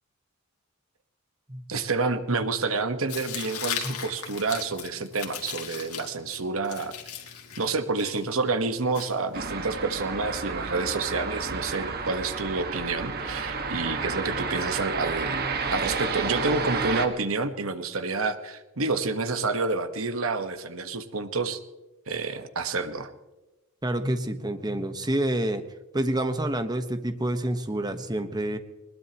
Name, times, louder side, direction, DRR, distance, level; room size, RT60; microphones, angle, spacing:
voice 1, 1.7-6.9 7.6-21.6 22.1-23.1, right 3 dB, 65° right, 9 dB, 1.3 m, -29 dB
Tearing, 3.1-9.7, left 8 dB, 85° left, 2.3 m, -38 dB
sound 1, 9.3-17.1, right 4 dB, 45° right, 1.6 m, -31 dB
voice 2, 23.8-25.6 25.9-28.6, right 1 dB, 20° right, 8 dB, 1.2 m, -28 dB
21.5 x 20.5 x 3.0 m, 1.1 s
head